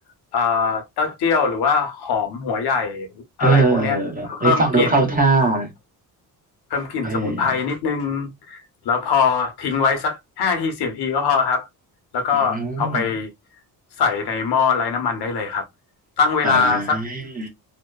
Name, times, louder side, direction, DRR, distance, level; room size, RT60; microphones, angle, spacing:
voice 1, 0.3-5.1 6.7-11.7 12.1-13.3 14.0-15.6 16.2-17.0, left 5 dB, 70° left, 0.8 m, -22 dB
voice 2, 3.4-5.7 7.0-7.4 12.3-13.1 16.4-17.5, right 3 dB, 20° right, 0.8 m, -21 dB
2.7 x 2.1 x 2.2 m
cardioid pair, 135°, 39 cm